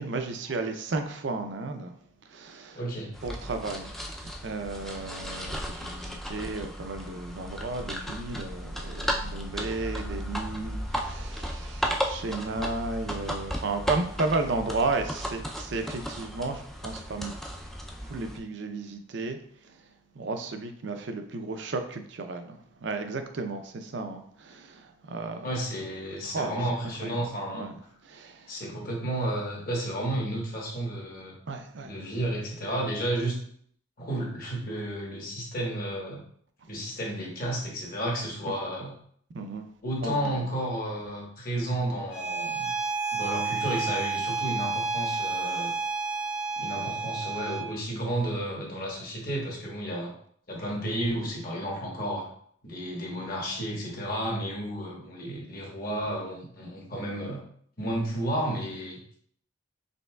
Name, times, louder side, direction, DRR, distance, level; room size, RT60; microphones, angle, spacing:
voice 1, 0.0-2.8 3.2-3.9 4.2-17.4 18.0-19.8 20.1-25.5 26.2-26.6 27.0-27.2 27.5-27.8 28.0-28.6 31.5-31.9 39.3-39.7 40.0-40.5, right 3 dB, 65° right, 6 dB, 0.5 m, -34 dB
voice 2, 2.7-3.1 25.4-27.7 28.5-31.4 31.8-33.3 34.0-36.2 36.7-38.9 39.8-42.7 43.1-45.7 46.6-50.1 50.5-52.3 52.6-57.4 57.8-59.2, right 1 dB, 45° left, -2 dB, 1.2 m, -32 dB
sound 1, 3.1-18.4, equal, ahead, 0.3 m, -35 dB
Bowed string instrument, 42.1-47.7, right 4 dB, 90° left, 1.3 m, -30 dB
5.3 x 3.3 x 2.2 m, 0.62 s
head